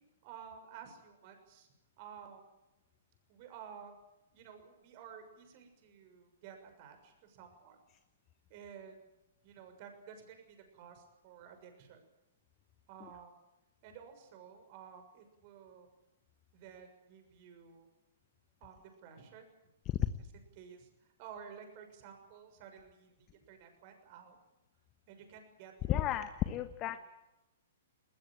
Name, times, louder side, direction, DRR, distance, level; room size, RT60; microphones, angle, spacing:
voice 1, 0.2-1.7 2.0-2.4 3.3-3.9 4.3-7.8 8.5-9.0 9.4-12.0 12.9-13.3 13.8-15.9 16.5-17.9 18.6-19.5 20.5-20.9 21.2-24.4 25.1-26.2, right 7 dB, 45° right, 6 dB, 6.5 m, -53 dB
voice 2, 25.9-27.0, left 12 dB, 30° left, 10 dB, 1.2 m, -33 dB
20.5 x 20.5 x 9.1 m, 0.95 s
figure-of-eight pair, 115°, 0 cm